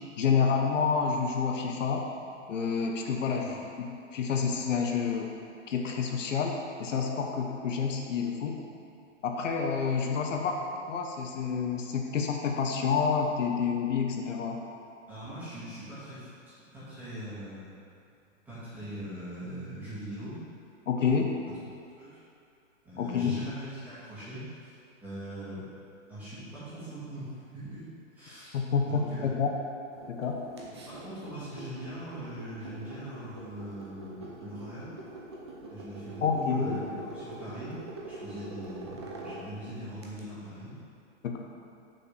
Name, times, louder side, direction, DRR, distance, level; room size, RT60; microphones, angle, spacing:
voice 1, 0.2-2.1 2.5-5.3 5.7-8.6 9.2-14.6 20.9-21.3 23.0-23.4 28.5-29.6 30.1-30.4 36.2-36.8 41.2-41.4, left 6 dB, 70° left, 2 dB, 0.9 m, -29 dB
voice 2, 15.1-17.7 18.5-20.4 22.0-22.2 22.8-24.7 25.0-25.6 26.1-27.9 28.1-29.3 30.8-34.9 35.7-37.8 38.1-40.7, right 1 dB, 5° right, -13 dB, 1.8 m, -41 dB
sound 1, 29.9-40.2, right 2 dB, 20° right, 0.5 m, -44 dB
6.4 x 4.3 x 6.3 m, 2.5 s
hypercardioid pair, 175°, 39 cm